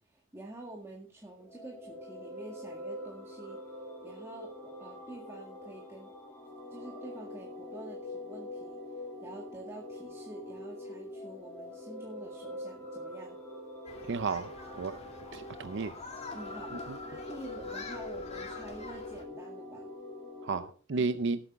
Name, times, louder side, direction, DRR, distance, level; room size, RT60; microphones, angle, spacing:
voice 1, 0.0-6.1 6.7-13.4 16.3-19.9 20.9-21.1, right 2 dB, 15° right, 2.0 m, -48 dB
sound 1, 1.3-20.7, left 1 dB, 10° left, 4.2 m, -44 dB
Human group actions, 13.9-19.2, left 3 dB, 35° left, 2.4 m, -45 dB
voice 2, 14.1-15.0 15.3-15.9 16.9-17.0 20.4-21.4, right 4 dB, 65° right, 0.6 m, -33 dB
18.0 x 8.4 x 3.6 m
head